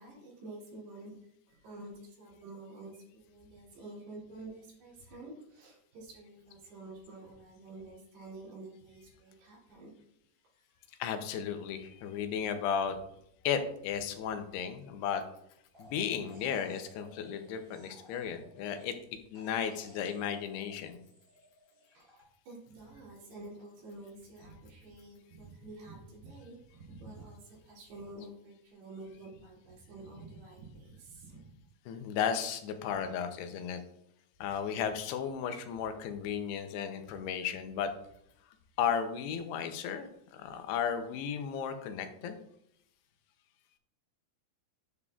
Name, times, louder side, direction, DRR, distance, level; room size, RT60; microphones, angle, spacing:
voice 1, 0.0-9.9 10.5-10.6 21.9-31.5 32.9-33.1, right 2 dB, 80° right, -5 dB, 4.7 m, -49 dB
voice 2, 11.0-13.0 13.4-15.2 15.8-19.0 19.3-21.0 31.9-33.8 34.4-37.9 38.8-42.4, left 7 dB, 85° left, 8 dB, 2.8 m, -34 dB
sound 1, 15.7-19.0 19.3-22.2, equal, 30° right, 2.5 m, -58 dB
9.7 x 7.0 x 2.4 m, 0.74 s
omnidirectional pair, 4.7 m